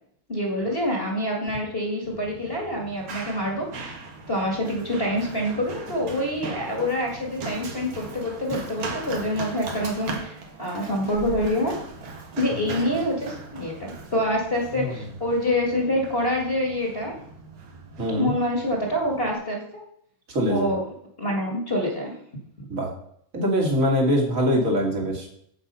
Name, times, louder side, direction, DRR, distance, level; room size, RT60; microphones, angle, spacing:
voice 1, 0.3-3.9 4.3-11.7 12.4-17.1 18.2-19.6 20.5-20.8 21.2-22.1, left 1 dB, 30° left, -2 dB, 2.0 m, -26 dB
Run, 2.0-19.3, right 3 dB, 70° right, 2.4 m, -39 dB
voice 2, 18.0-18.3 20.3-20.7 22.7-22.9 23.3-25.3, equal, 40° right, 1 dB, 2.7 m, -23 dB
8.6 x 8.0 x 5.5 m, 0.68 s
omnidirectional pair, 2.3 m